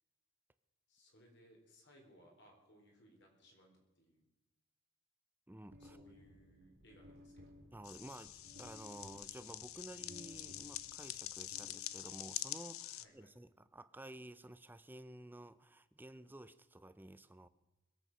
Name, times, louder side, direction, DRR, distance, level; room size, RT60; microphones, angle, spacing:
voice 1, 0.9-4.2 5.8-7.7 13.0-13.3, equal, 55° left, 1 dB, 4.3 m, -65 dB
voice 2, 5.5-6.0 7.7-17.5, right 1 dB, 10° right, 14 dB, 0.5 m, -53 dB
sound 1, 5.7-12.3, left 1 dB, 55° right, 2.3 m, -59 dB
sound 2, 7.8-13.0, left 13 dB, 80° left, 0.6 m, -46 dB
21.5 x 8.4 x 6.2 m, 1.1 s
head